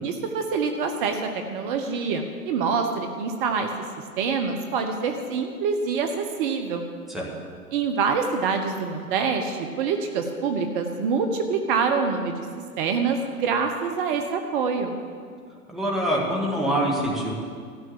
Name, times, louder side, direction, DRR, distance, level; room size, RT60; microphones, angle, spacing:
voice 1, 0.0-3.7 4.2-6.9 7.7-12.5 12.8-15.0, right 5 dB, 35° right, 5 dB, 1.0 m, -26 dB
voice 2, 15.7-17.3, right 1 dB, ahead, -4 dB, 2.4 m, -25 dB
13.5 x 6.2 x 9.8 m, 2.1 s
figure-of-eight pair, 110°, 46 cm